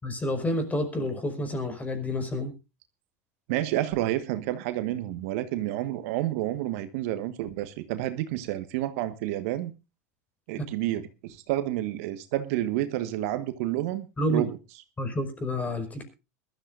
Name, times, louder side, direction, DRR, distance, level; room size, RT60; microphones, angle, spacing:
voice 1, 0.0-2.5 10.5-10.7 14.2-14.4 15.0-16.1, equal, 20° left, 5.2 m, -29 dB
voice 2, 3.5-9.7 10.5-14.5, right 14 dB, 60° right, 1.4 m, -30 dB
21.5 x 13.0 x 2.5 m
hypercardioid pair, 90°, 9 cm